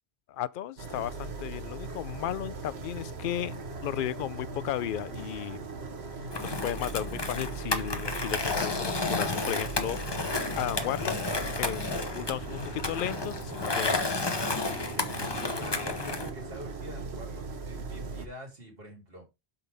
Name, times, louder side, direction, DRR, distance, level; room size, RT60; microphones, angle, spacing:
voice 1, 0.3-5.6 6.4-10.0 10.6-11.2 11.6-14.1, left 11 dB, 60° left, 0.7 m, -34 dB
sound 1, 0.8-18.3, right 3 dB, 85° right, 1.4 m, -39 dB
Skateboard, 6.3-16.3, left 3 dB, 25° left, 0.9 m, -32 dB
voice 2, 14.5-19.3, equal, 65° right, 3.3 m, -46 dB
7.8 x 5.7 x 3.4 m
omnidirectional pair, 1.1 m